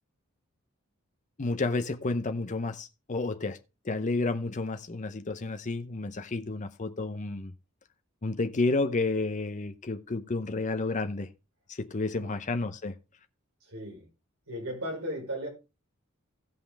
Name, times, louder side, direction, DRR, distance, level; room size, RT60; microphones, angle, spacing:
voice 1, 1.4-3.6 3.8-7.5 8.2-11.3 11.7-12.9, left 3 dB, 35° left, 0.7 m, -31 dB
voice 2, 13.6-14.0 14.5-15.5, equal, 75° right, 4.9 m, -36 dB
16.5 x 5.6 x 3.4 m
head